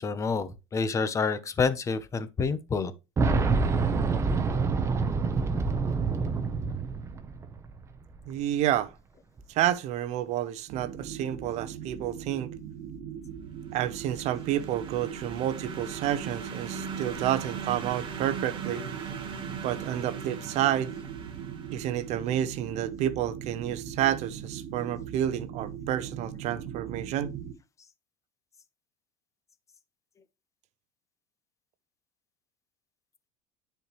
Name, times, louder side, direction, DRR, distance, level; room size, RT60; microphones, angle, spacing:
voice 1, 0.0-2.9, left 5 dB, 20° left, 0.9 m, -28 dB
Boom, 3.2-7.9 8.2-8.3 9.4-9.5, right 4 dB, 20° right, 0.9 m, -27 dB
voice 2, 8.3-8.9 9.5-12.5 13.7-18.8 19.6-20.9 21.7-27.3, right 11 dB, 50° right, 0.8 m, -30 dB
sound 1, 10.7-27.5, right 8 dB, 80° right, 1.6 m, -40 dB
sound 2, 13.7-22.3, right 5 dB, 35° right, 2.3 m, -40 dB
10.5 x 4.5 x 3.2 m
cardioid pair, 150°, 15 cm